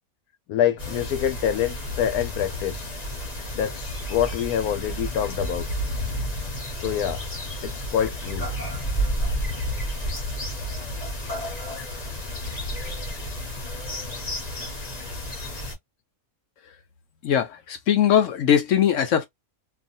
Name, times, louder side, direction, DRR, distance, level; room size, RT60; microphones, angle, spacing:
voice 1, 0.5-2.9 3.5-5.6 6.8-7.2 7.6-8.5, left 10 dB, 85° left, 1.1 m, -26 dB
sound 1, 0.8-15.7, equal, 35° left, 0.8 m, -31 dB
voice 2, 17.2-19.3, left 9 dB, 70° left, 0.9 m, -20 dB
2.7 x 2.4 x 2.6 m
omnidirectional pair, 1.5 m